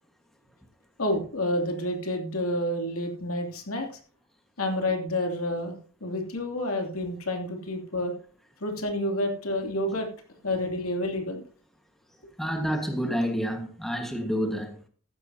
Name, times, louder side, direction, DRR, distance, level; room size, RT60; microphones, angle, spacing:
voice 1, 1.0-3.9 4.6-8.1 8.6-10.1 10.4-11.4, left 1 dB, 80° left, 2.8 m, -29 dB
voice 2, 12.4-14.8, equal, ahead, 1.5 m, -28 dB
14.5 x 12.5 x 2.8 m
head